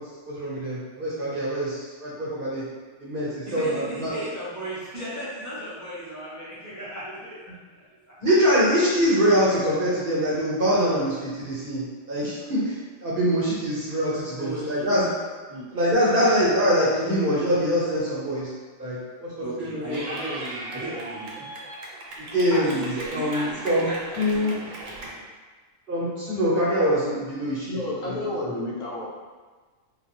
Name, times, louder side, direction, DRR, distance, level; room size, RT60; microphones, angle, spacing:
voice 1, 0.0-2.6 3.0-4.1 8.2-15.1 15.7-18.5 18.8-19.3 19.6-20.0 22.2-23.9 24.1-24.6 25.9-27.7 28.4-28.5, equal, 45° right, -7 dB, 0.9 m, -24 dB
voice 2, 3.4-8.3 14.4-14.9 15.5-15.7 19.4-21.5 22.5-25.2, right 1 dB, 20° right, -10 dB, 0.6 m, -36 dB
Clapping / Cheering, 19.9-25.1, right 2 dB, 75° right, 1.1 m, -38 dB
voice 3, 27.7-29.1, left 2 dB, 75° left, -3 dB, 1.0 m, -30 dB
3.7 x 2.4 x 2.9 m, 1.4 s
omnidirectional pair, 1.4 m